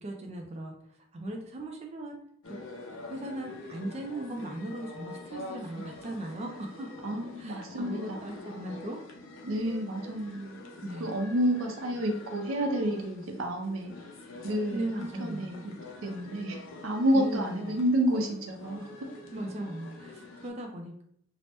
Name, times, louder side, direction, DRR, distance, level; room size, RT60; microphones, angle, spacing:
voice 1, 0.0-2.2 2.5-2.6 3.0-6.9 7.4-9.0 10.8-11.1 14.7-15.6 17.1-17.7 19.3-21.0, right 1 dB, 35° right, 1 dB, 0.3 m, -38 dB
sound 1, 2.4-20.5, left 2 dB, 80° left, 0.6 m, -46 dB
voice 2, 7.0-8.4 9.4-10.6 11.0-13.9 14.4-15.7 16.0-18.9, right 1 dB, 80° right, 4 dB, 0.5 m, -30 dB
3.2 x 2.0 x 2.8 m, 0.68 s
head